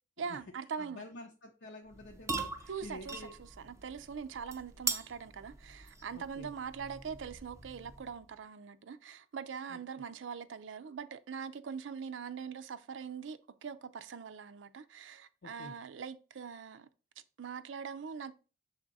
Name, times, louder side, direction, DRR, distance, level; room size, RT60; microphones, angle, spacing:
voice 1, 0.2-1.0 2.7-16.9 17.4-18.3, right 6 dB, 75° right, 0.5 m, -42 dB
voice 2, 0.8-3.3 6.1-6.5 9.7-9.8 15.4-15.7, left 2 dB, 65° left, 0.7 m, -49 dB
sound 1, 1.9-8.3, right 4 dB, 15° right, 0.5 m, -42 dB
6.5 x 3.6 x 4.0 m
head